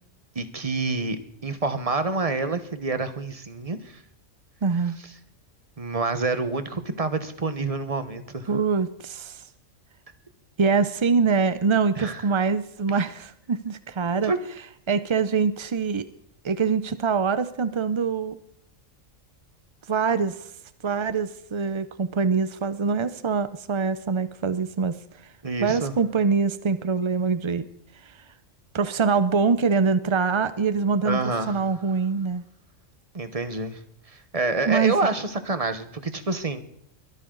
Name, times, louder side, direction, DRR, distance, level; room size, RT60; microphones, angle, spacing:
voice 1, 0.3-4.0 5.8-8.5 12.0-12.3 14.2-14.4 25.4-26.0 31.0-31.6 33.1-33.8 34.1-36.6, right 3 dB, 30° right, 10 dB, 1.2 m, -27 dB
voice 2, 4.6-5.0 8.5-9.4 10.6-14.3 14.9-16.0 16.4-18.4 19.9-20.5 20.8-25.0 25.6-27.6 28.0-28.1 28.7-31.2 31.5-32.4 34.7-34.9, right 5 dB, 45° right, 13 dB, 0.3 m, -24 dB
22.5 x 13.5 x 3.9 m, 0.70 s
omnidirectional pair, 1.3 m